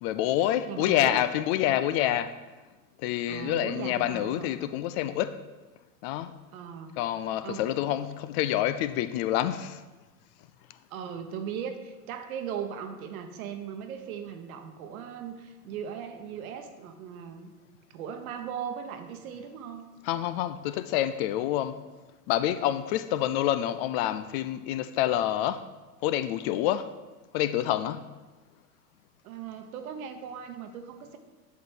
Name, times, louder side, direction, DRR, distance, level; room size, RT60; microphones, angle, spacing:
voice 1, 0.0-2.3 3.0-5.4 6.0-6.3 7.0-9.8 20.0-21.8 22.3-25.6 26.0-26.9 27.3-28.0, left 12 dB, 45° left, 0.4 m, -27 dB
voice 2, 0.7-1.2 3.3-4.7 6.5-6.9 7.4-7.7 10.9-17.5 17.9-19.9 29.2-31.2, right 7 dB, 65° right, 1.1 m, -38 dB
8.2 x 6.4 x 4.5 m
hypercardioid pair, 90°, 45 cm